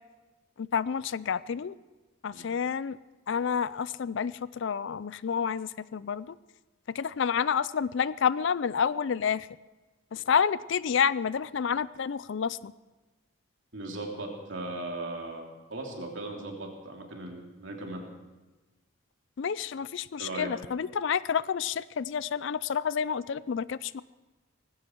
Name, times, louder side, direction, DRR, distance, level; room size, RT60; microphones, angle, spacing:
voice 1, 0.6-1.7 2.2-3.0 3.3-6.4 6.9-9.5 10.1-12.7 19.4-24.0, left 7 dB, 55° left, 18 dB, 0.4 m, -29 dB
voice 2, 13.7-18.0 20.2-20.5, right 2 dB, 60° right, 1 dB, 3.0 m, -38 dB
18.5 x 15.5 x 4.6 m, 1.2 s
head